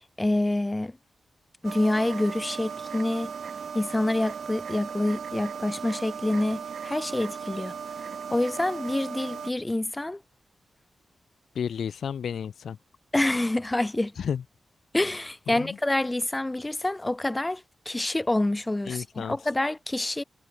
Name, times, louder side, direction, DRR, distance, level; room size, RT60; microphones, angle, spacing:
voice 1, 0.2-0.9 1.6-3.3 3.7-7.7 8.3-10.2 13.1-14.1 14.9-20.2, left 1 dB, 15° left, 1.2 m, -27 dB
sound 1, 1.6-9.5, right 6 dB, 65° right, 2.7 m, -37 dB
voice 2, 11.6-12.8 14.2-14.4 15.5-15.8 18.9-19.4, left 7 dB, 80° left, 0.3 m, -32 dB
wide cardioid pair, 140°, 0 cm